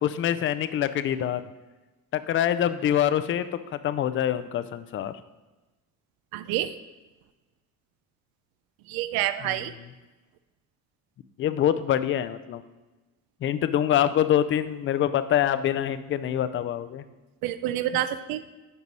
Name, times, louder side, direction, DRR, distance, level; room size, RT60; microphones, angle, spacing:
voice 1, 0.0-1.4 2.1-5.1 9.4-9.7 11.4-12.6 13.4-17.0, left 10 dB, 35° left, 13 dB, 0.4 m, -25 dB
voice 2, 6.3-6.7 8.9-9.7 17.4-18.4, right 12 dB, 80° right, 12 dB, 0.5 m, -28 dB
11.0 x 4.6 x 4.1 m, 1.1 s
cardioid pair, 145°, 35 cm